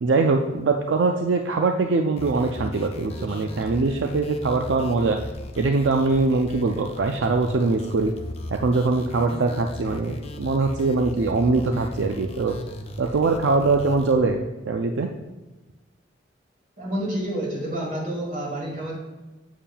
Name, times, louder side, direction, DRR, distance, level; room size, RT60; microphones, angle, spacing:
voice 1, 0.0-5.2 5.6-8.1 8.5-12.6 13.0-15.1, right 3 dB, 75° right, 4 dB, 0.4 m, -22 dB
sound 1, 2.2-14.1, left 1 dB, 35° left, 0.5 m, -37 dB
voice 2, 16.8-18.9, right 1 dB, 45° right, -3 dB, 2.1 m, -29 dB
7.2 x 7.0 x 2.2 m, 1.1 s
head